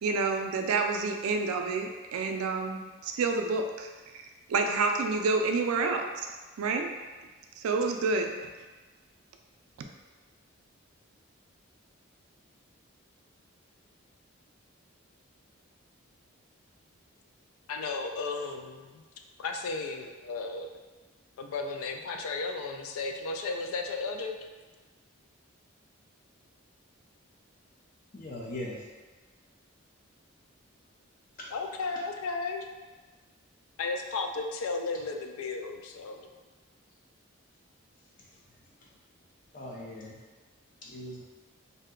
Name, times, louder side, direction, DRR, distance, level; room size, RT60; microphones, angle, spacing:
voice 1, 0.0-3.9 4.1-4.2 4.5-6.9 7.6-8.4, right 4 dB, 85° right, 4 dB, 0.4 m, -29 dB
voice 2, 17.7-19.0 19.4-20.7 21.4-24.4 31.5-32.7 33.8-36.3, left 3 dB, 90° left, 4 dB, 0.3 m, -34 dB
voice 3, 28.1-28.8 31.4-31.5 39.5-40.2 40.8-41.2, left 1 dB, 40° left, -3 dB, 0.5 m, -40 dB
2.6 x 2.1 x 3.7 m, 1.3 s
head